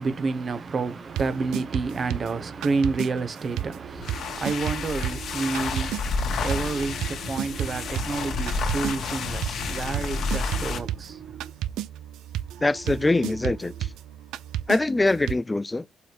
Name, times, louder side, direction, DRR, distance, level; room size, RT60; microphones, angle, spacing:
voice 1, 0.0-11.4, right 4 dB, 45° right, 1.2 m, -29 dB
sound 1, 1.1-3.1 3.6-15.3, right 12 dB, 90° right, 0.5 m, -34 dB
sound 2, 3.9-10.9, left 4 dB, 65° left, 1.8 m, -30 dB
sound 3, 5.1-5.5 7.5-8.5 10.5-11.5, right 9 dB, 60° right, 3.1 m, -44 dB
voice 2, 12.6-13.7 14.7-15.9, left 2 dB, 20° left, 0.4 m, -23 dB
5.7 x 4.3 x 4.7 m
cardioid pair, 90°, 0 cm